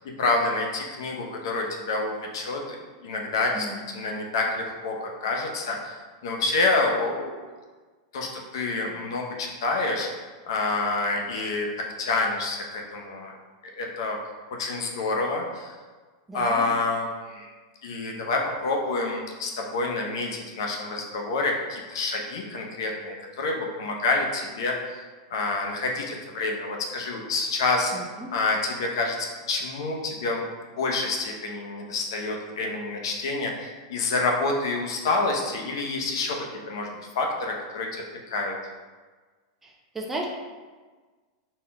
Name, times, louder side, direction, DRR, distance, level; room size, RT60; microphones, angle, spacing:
voice 1, 0.2-3.7 3.9-7.5 8.1-8.3 8.5-10.1 10.5-11.7 12.0-13.3 13.7-14.2 14.6-15.8 16.3-17.5 17.8-25.0 25.3-27.9 28.3-30.5 30.8-36.4 36.7-38.5, left 3 dB, 75° left, 0 dB, 0.7 m, -28 dB
voice 2, 16.3-16.6 27.9-28.3 39.6-40.2, right 2 dB, 10° right, -1 dB, 0.6 m, -35 dB
4.3 x 3.7 x 2.2 m, 1.4 s
supercardioid pair, 130°, 2 cm